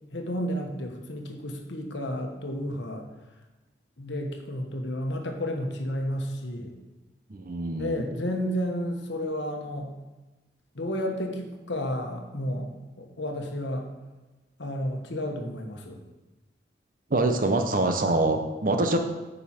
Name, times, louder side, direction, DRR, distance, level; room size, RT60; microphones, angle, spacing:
voice 1, 0.1-3.1 4.0-6.8 7.8-9.9 10.7-12.7 13.0-13.9 14.6-16.0, equal, 75° left, 3 dB, 1.1 m, -31 dB
voice 2, 7.3-8.1 17.1-19.0, right 2 dB, 45° right, 6 dB, 0.7 m, -25 dB
9.1 x 5.4 x 4.3 m, 1.1 s
head